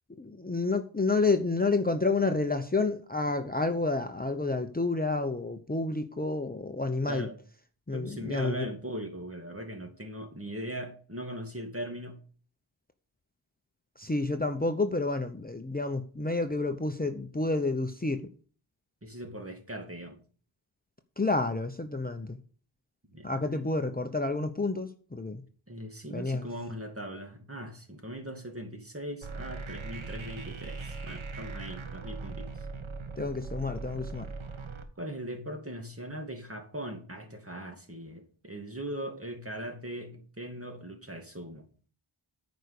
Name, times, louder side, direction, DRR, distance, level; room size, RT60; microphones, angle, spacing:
voice 1, 0.2-7.3 7.9-8.7 14.0-18.3 21.2-22.4 23.2-25.4 26.1-26.5 33.2-34.3, left 3 dB, 20° left, 0.9 m, -29 dB
voice 2, 7.9-12.2 19.0-20.2 23.1-23.6 25.7-32.5 35.0-41.6, right 1 dB, 25° right, 2.5 m, -40 dB
sound 1, 29.2-34.8, right 3 dB, 70° right, 1.3 m, -40 dB
9.2 x 5.2 x 6.6 m
wide cardioid pair, 50°, 49 cm